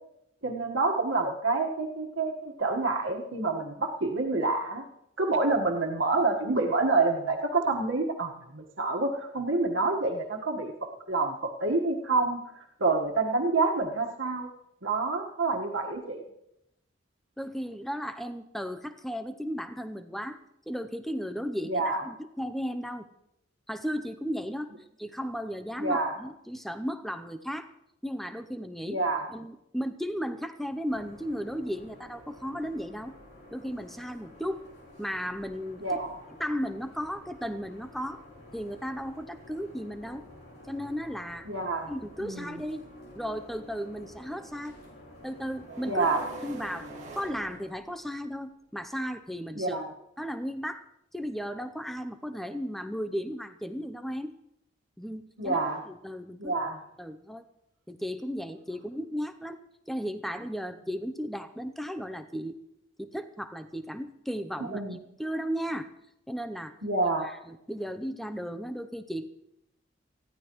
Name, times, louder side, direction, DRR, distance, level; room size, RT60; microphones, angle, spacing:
voice 1, 0.4-4.8 5.2-14.5 14.8-16.2 21.6-22.0 25.8-26.2 28.9-29.3 35.8-36.2 41.5-41.9 42.2-42.6 45.9-46.3 49.5-49.9 55.4-55.8 56.4-56.8 64.6-65.0 66.8-67.3, right 3 dB, 85° right, 1 dB, 1.5 m, -28 dB
voice 2, 17.4-20.4 20.7-23.1 23.7-24.7 25.0-27.7 28.0-29.0 29.3-33.2 33.5-34.6 35.0-35.8 36.4-38.2 38.5-40.2 40.7-41.5 41.9-42.8 43.1-44.7 45.2-46.1 46.4-46.9 47.1-49.8 50.2-50.9 51.1-54.3 55.0-55.6 55.9-56.5 57.0-57.4 57.9-59.6 59.9-62.6 63.0-64.8 65.2-65.9 66.3-66.7 67.2-69.3, equal, ahead, 10 dB, 0.6 m, -35 dB
sound 1, 30.9-47.6, left 1 dB, 50° left, 3.8 m, -51 dB
sound 2, 45.7-48.3, right 3 dB, 40° right, 2.1 m, -44 dB
19.5 x 14.0 x 3.1 m, 0.80 s
head